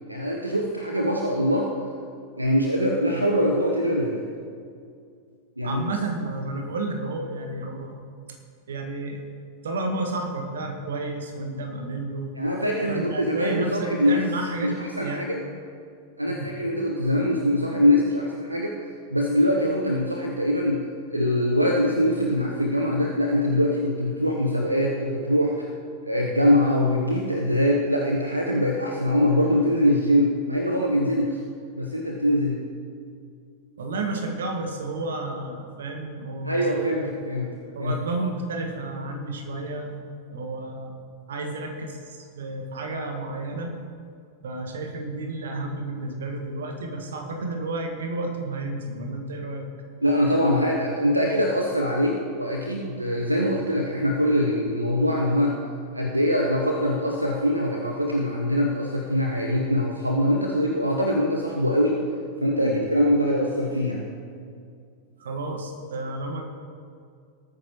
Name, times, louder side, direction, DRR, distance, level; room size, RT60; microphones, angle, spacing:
voice 1, 0.1-1.7 2.4-4.2 5.6-5.8 12.4-14.2 14.6-15.4 16.2-18.7 19.1-20.8 21.1-25.7 26.1-31.4 31.7-32.6 36.4-37.5 37.8-38.0 50.0-55.6 55.9-62.0 62.4-64.1, equal, 85° right, 0 dB, 0.9 m, -23 dB
voice 2, 5.6-8.0 8.7-9.2 9.6-12.3 12.9-15.3 16.3-16.5 33.8-37.1 37.7-41.0 41.3-43.8 44.4-49.7 62.6-62.8 65.2-66.4, right 2 dB, 65° right, 3 dB, 1.7 m, -31 dB
19.0 x 9.2 x 3.1 m, 2.3 s
figure-of-eight pair, 90°, 0 cm